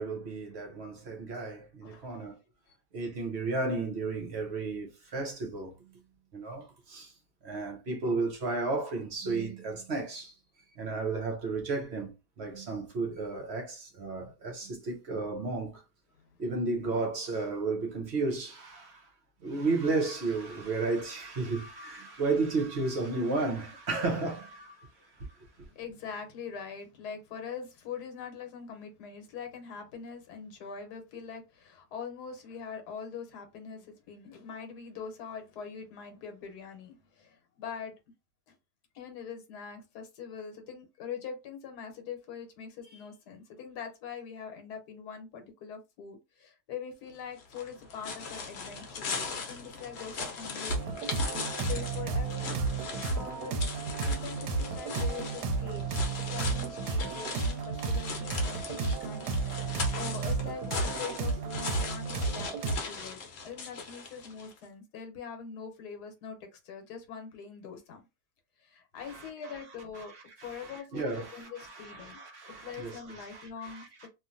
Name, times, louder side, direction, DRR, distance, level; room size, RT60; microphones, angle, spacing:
voice 1, 0.0-2.4 2.9-5.9 6.3-7.1 7.4-10.3 10.8-15.8 16.4-19.1 19.4-25.3 69.1-69.6 69.9-74.1, right 3 dB, 55° right, 0.8 m, -33 dB
voice 2, 1.8-2.3 2.7-2.8 25.6-38.0 38.5-38.6 38.9-51.0 51.7-52.5 53.0-53.5 54.0-56.0 56.3-68.0 68.6-70.1 70.4-72.2 72.6-74.1, left 6 dB, 80° left, 1.3 m, -43 dB
sound 1, 47.4-64.6, left 5 dB, 60° left, 1.0 m, -39 dB
sound 2, 50.7-62.8, right 4 dB, 85° right, 1.2 m, -32 dB
2.9 x 2.5 x 2.5 m
omnidirectional pair, 1.7 m